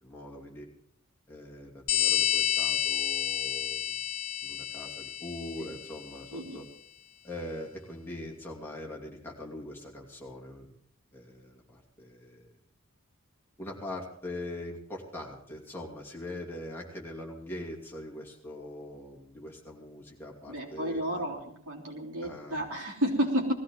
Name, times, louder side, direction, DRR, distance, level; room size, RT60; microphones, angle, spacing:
voice 1, 0.0-0.7 1.3-4.0 4.4-6.7 7.2-10.7 11.1-12.5 13.6-21.4 22.2-22.7, left 1 dB, 10° left, -3 dB, 2.8 m, -42 dB
sound 1, 1.9-6.2, left 11 dB, 85° left, 1.2 m, -30 dB
voice 2, 20.5-23.5, equal, 80° right, -1 dB, 3.5 m, -31 dB
19.5 x 15.0 x 3.9 m, 0.65 s
head